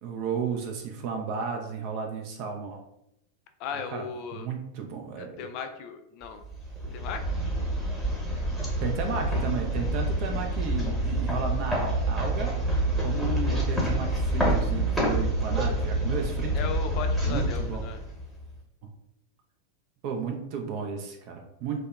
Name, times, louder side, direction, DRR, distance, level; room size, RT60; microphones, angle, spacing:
voice 1, 0.0-2.8 3.7-4.1 4.3-5.3 8.8-12.5 13.0-16.6 17.3-17.8 18.8-18.9 20.0-21.9, right 6 dB, 50° right, 3 dB, 0.4 m, -33 dB
voice 2, 3.6-4.5 5.2-6.4 6.9-7.2 16.5-18.0, left 6 dB, 45° left, 7 dB, 0.3 m, -36 dB
sound 1, 6.4-18.5, right 1 dB, ahead, 1.0 m, -27 dB
2.6 x 2.1 x 2.3 m, 0.82 s
figure-of-eight pair, 90°, 0 cm